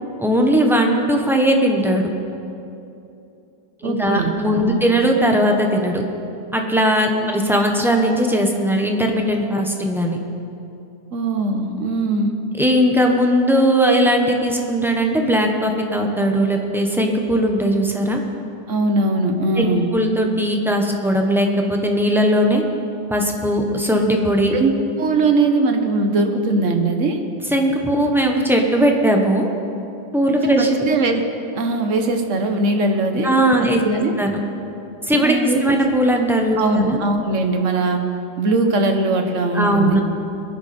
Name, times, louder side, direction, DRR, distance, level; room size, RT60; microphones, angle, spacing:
voice 1, 0.2-2.1 3.8-6.0 6.5-10.2 12.6-18.2 19.6-22.6 23.1-24.6 27.5-29.5 30.1-30.9 33.2-34.4 35.1-35.3 35.6-37.0 39.5-40.0, equal, ahead, 1 dB, 0.9 m, -18 dB
voice 2, 3.8-4.3 4.6-4.8 7.2-7.4 11.1-12.3 18.7-19.9 24.5-24.7 25.0-27.2 30.4-31.2 31.5-33.3 33.6-34.1 35.2-35.6 36.6-38.0 38.4-40.0, right 3 dB, 45° right, 5 dB, 1.3 m, -20 dB
21.5 x 10.5 x 4.4 m, 2.8 s
omnidirectional pair, 2.0 m